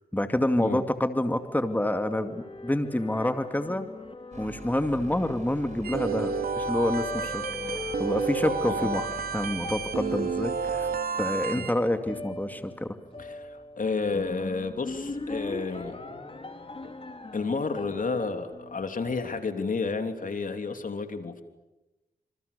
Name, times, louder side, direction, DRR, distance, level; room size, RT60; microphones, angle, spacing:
voice 1, 0.1-3.9 4.4-7.4 8.0-10.9 11.2-13.0, left 1 dB, 10° left, 8 dB, 2.3 m, -28 dB
sound 1, 1.2-19.8, left 3 dB, 35° left, 4.0 m, -40 dB
sound 2, 4.3-11.0, right 2 dB, 50° right, 5.4 m, -45 dB
sound 3, 5.8-11.7, right 5 dB, 75° right, 2.7 m, -31 dB
voice 2, 13.2-15.9 17.3-21.4, left 4 dB, 60° left, 7 dB, 3.3 m, -31 dB
27.5 x 27.5 x 6.9 m, 1.0 s
cardioid pair, 50°, 16 cm